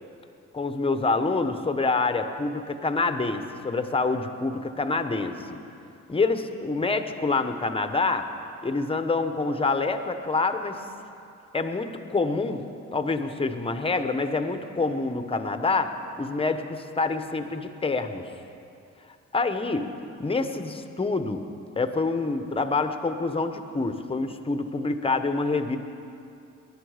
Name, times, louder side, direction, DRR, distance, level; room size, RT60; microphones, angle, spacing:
voice 1, 0.5-5.6 6.1-8.3 8.6-10.8 11.5-12.6 12.9-18.3 19.3-19.8 20.2-21.4 21.8-25.8, left 3 dB, 20° left, 8 dB, 1.0 m, -26 dB
20.0 x 11.0 x 5.0 m, 2.6 s
cardioid pair, 90°, 30 cm